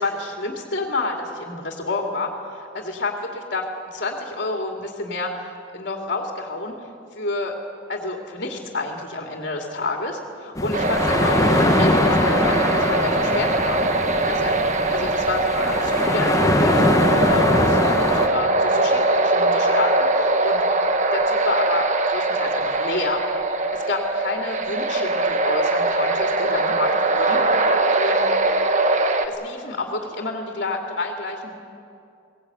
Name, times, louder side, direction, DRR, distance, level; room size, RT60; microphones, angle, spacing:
voice 1, 0.0-6.9 7.1-7.6 7.9-13.9 14.3-14.6 14.9-20.6 21.1-23.2 23.7-27.4 27.8-28.3 29.2-31.5, left 2 dB, 55° left, 1 dB, 2.5 m, -29 dB
sound 1, 10.5-18.3, left 1 dB, 15° left, 1.1 m, -22 dB
sound 2, 10.7-29.3, right 2 dB, 40° right, 1.2 m, -21 dB
22.5 x 18.5 x 9.0 m, 2.5 s
head